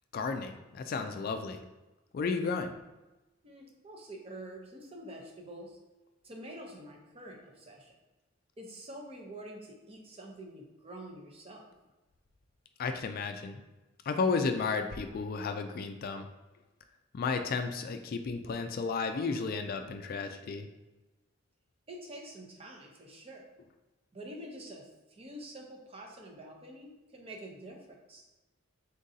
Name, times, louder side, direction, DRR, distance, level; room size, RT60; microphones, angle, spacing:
voice 1, 0.1-1.6 2.1-2.7 12.8-13.6 14.1-16.3 17.1-20.7, left 4 dB, 50° left, 7 dB, 0.3 m, -33 dB
voice 2, 3.4-5.8 6.2-7.9 8.6-11.6 21.9-23.4 24.1-28.2, right 1 dB, 30° right, 0 dB, 0.7 m, -47 dB
3.8 x 3.7 x 2.7 m, 1.1 s
head